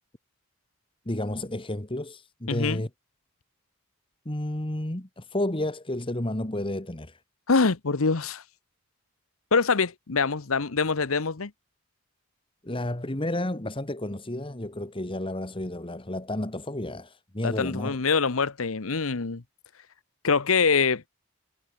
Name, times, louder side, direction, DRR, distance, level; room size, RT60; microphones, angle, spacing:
voice 1, 1.0-2.9 4.2-7.2 12.6-18.0, left 1 dB, 25° left, 1.7 m, -31 dB
voice 2, 2.5-2.8 7.5-8.4 9.5-11.5 17.4-19.4 20.2-21.0, left 4 dB, 80° left, 1.0 m, -24 dB
head